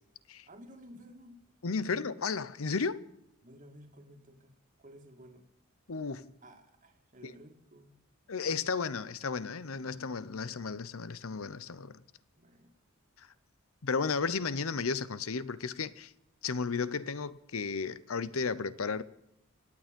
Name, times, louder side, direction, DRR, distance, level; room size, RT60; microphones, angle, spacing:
voice 1, 0.5-1.5 1.8-2.1 3.4-5.6 6.4-8.0 12.4-12.8, equal, 35° right, 2.0 m, -54 dB
voice 2, 1.6-3.1 5.9-6.3 7.2-7.3 8.3-12.0 13.2-13.3 13.8-16.1 16.4-19.0, left 5 dB, 70° left, 0.8 m, -34 dB
26.5 x 9.0 x 5.3 m
head